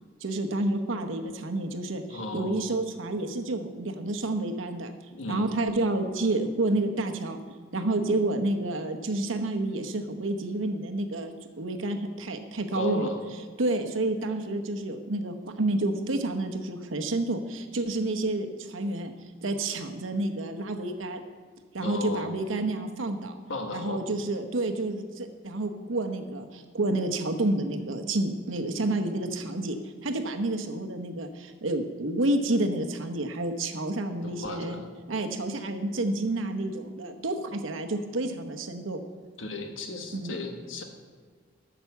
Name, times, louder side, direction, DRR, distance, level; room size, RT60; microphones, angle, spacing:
voice 1, 0.2-4.9 5.3-7.4 7.7-13.1 13.6-19.1 19.4-21.2 21.7-23.4 23.7-29.8 30.0-34.8 35.1-39.0 40.1-40.4, right 2 dB, 90° right, 6 dB, 0.9 m, -29 dB
voice 2, 2.1-2.7 5.1-5.5 12.7-13.2 21.8-22.4 23.5-24.0 34.2-34.9 39.4-40.8, left 1 dB, 85° left, 4 dB, 1.3 m, -35 dB
9.0 x 6.1 x 7.1 m, 1.6 s
head